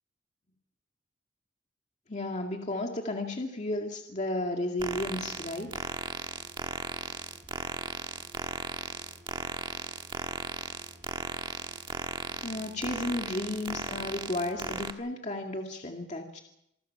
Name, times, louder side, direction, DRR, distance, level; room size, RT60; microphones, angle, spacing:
voice 1, 2.1-5.7 12.4-16.4, left 1 dB, 40° left, 2 dB, 2.2 m, -33 dB
sound 1, 4.8-14.9, right 3 dB, 25° right, 1.5 m, -37 dB
27.5 x 20.5 x 5.8 m, 0.77 s
head